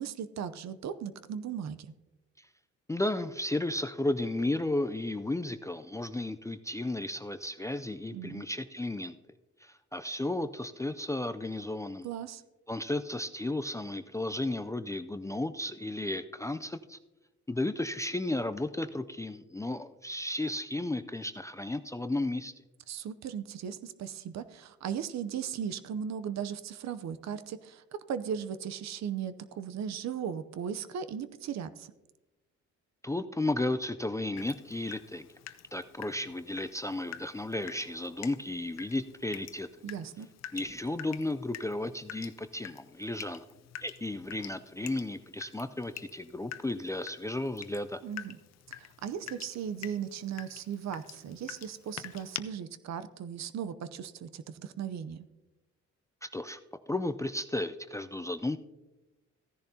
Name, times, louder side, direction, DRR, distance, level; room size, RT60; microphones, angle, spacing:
voice 1, 0.0-1.9 8.1-8.4 12.0-12.4 22.9-31.9 39.8-40.3 48.0-48.4 48.8-55.3, right 8 dB, 60° right, 13 dB, 0.7 m, -37 dB
voice 2, 2.9-9.2 9.6-12.1 12.7-17.0 17.5-22.5 33.0-35.3 35.7-39.7 40.5-43.5 43.8-48.0 56.2-56.6 56.9-58.6, left 2 dB, 10° left, 11 dB, 0.4 m, -34 dB
Water tap faucet / Drip, 34.4-52.4, left 11 dB, 60° left, 0.6 m, -47 dB
15.5 x 10.5 x 2.8 m, 1.1 s
cardioid pair, 90°, 30 cm